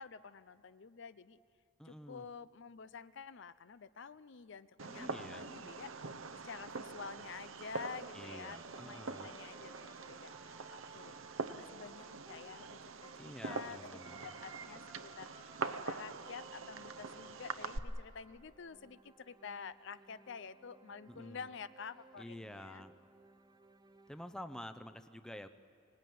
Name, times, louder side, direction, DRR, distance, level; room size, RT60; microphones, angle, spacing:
voice 1, 0.0-1.4 1.9-5.9 6.4-11.2 11.5-22.8, left 6 dB, 60° left, 15 dB, 0.5 m, -49 dB
voice 2, 1.8-2.3 4.9-5.5 8.1-9.3 13.2-14.3 21.1-21.5 22.2-22.9 24.1-25.5, left 1 dB, 5° left, 9 dB, 0.6 m, -49 dB
Fireworks, 4.8-17.8, right 4 dB, 75° right, 0.9 m, -44 dB
sound 1, 8.3-13.7 14.0-24.3, right 3 dB, 20° right, 0.9 m, -60 dB
25.0 x 19.0 x 9.4 m, 2.5 s
head